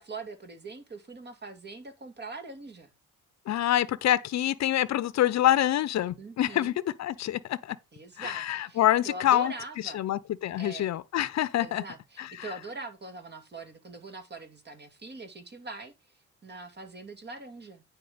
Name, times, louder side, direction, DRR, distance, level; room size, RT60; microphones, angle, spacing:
voice 1, 0.0-2.9 6.2-6.8 7.9-10.0 10.6-10.9 11.6-15.9 16.4-17.8, right 3 dB, 35° right, 2.3 m, -42 dB
voice 2, 3.5-7.8 8.2-9.5 9.9-11.8 12.2-12.3, left 12 dB, 65° left, 0.8 m, -26 dB
9.3 x 5.0 x 5.0 m
cardioid pair, 90°, 30 cm